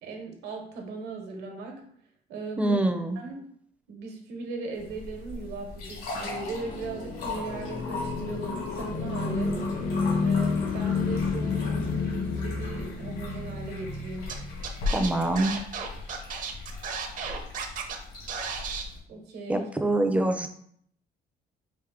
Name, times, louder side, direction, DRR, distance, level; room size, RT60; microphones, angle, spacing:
voice 1, 0.0-1.8 2.3-2.8 3.2-3.4 3.9-9.6 10.2-14.3 19.1-19.7, right 3 dB, 75° right, 3 dB, 1.1 m, -38 dB
voice 2, 2.6-3.2 14.9-15.5 19.5-20.5, right 1 dB, 10° right, 7 dB, 0.5 m, -25 dB
sound 1, 4.8-19.0, left 3 dB, 75° left, 1.9 m, -39 dB
sound 2, 5.8-15.1, left 4 dB, 55° left, 0.8 m, -30 dB
Scratching (performance technique), 14.3-14.4 14.6-18.0 18.3-18.8, right 6 dB, 50° right, 0.7 m, -34 dB
4.9 x 2.6 x 3.7 m, 0.65 s
cardioid pair, 110°, 17 cm